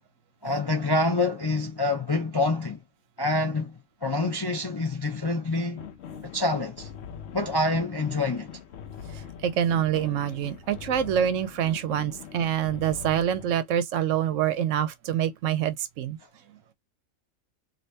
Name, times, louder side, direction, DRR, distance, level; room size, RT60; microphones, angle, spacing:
voice 1, 0.4-2.8 3.2-5.8 6.2-6.9 7.3-8.5, left 2 dB, 35° left, 0.4 m, -26 dB
sound 1, 5.8-13.6, left 8 dB, 65° left, 0.8 m, -42 dB
voice 2, 9.1-16.2, right 10 dB, 70° right, 0.9 m, -26 dB
2.8 x 2.8 x 3.2 m
omnidirectional pair, 1.4 m